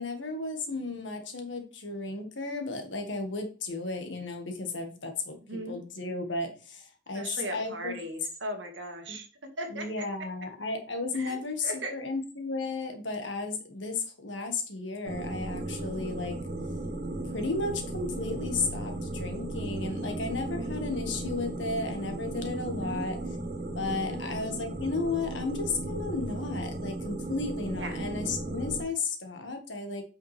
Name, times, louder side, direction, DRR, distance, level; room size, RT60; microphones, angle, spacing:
voice 1, 0.0-5.4 5.7-7.9 9.1-9.2 9.7-16.4 17.3-23.2 23.8-30.0, left 3 dB, 80° left, 5 dB, 1.7 m, -34 dB
voice 2, 5.5-5.8 7.1-9.3 9.6-10.0 11.1-12.0 22.8-23.0 24.1-24.3 27.8-28.0, right 1 dB, 75° right, 4 dB, 1.9 m, -38 dB
sound 1, 15.1-28.8, right 2 dB, 50° right, 1.5 m, -35 dB
8.4 x 5.7 x 3.4 m, 0.37 s
head